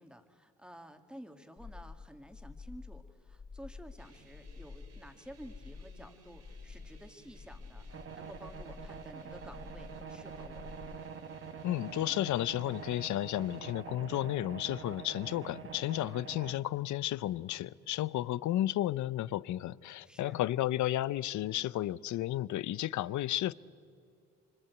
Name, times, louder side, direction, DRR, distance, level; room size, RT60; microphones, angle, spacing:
voice 1, 0.0-10.9 20.0-20.4, equal, 5° right, 1.9 m, -52 dB
sound 1, 1.6-11.0, left 4 dB, 20° left, 0.6 m, -50 dB
sound 2, 4.0-13.8, right 3 dB, 60° right, 4.2 m, -61 dB
sound 3, 7.9-16.6, right 6 dB, 45° right, 1.4 m, -46 dB
voice 2, 11.6-23.5, left 14 dB, 70° left, 0.6 m, -33 dB
25.5 x 24.5 x 8.2 m
cardioid pair, 90°, 30 cm